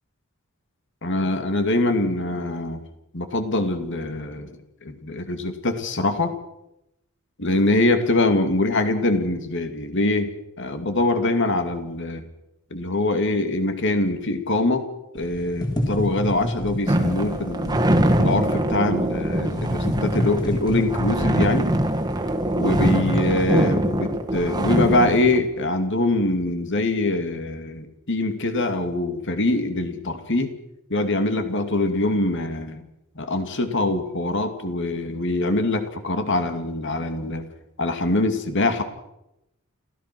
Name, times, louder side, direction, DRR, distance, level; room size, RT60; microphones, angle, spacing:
voice 1, 1.0-2.8 3.1-4.5 4.8-6.3 7.4-12.2 12.7-14.9 15.1-17.8 18.2-21.7 22.5-30.5 30.9-32.8 33.2-37.5 37.8-38.8, left 2 dB, 60° left, 8 dB, 2.5 m, -23 dB
sound 1, 15.2-23.7, equal, 20° left, 4.0 m, -29 dB
sound 2, 16.9-25.4, right 1 dB, 20° right, 1.9 m, -23 dB
29.5 x 14.5 x 6.1 m, 0.85 s
head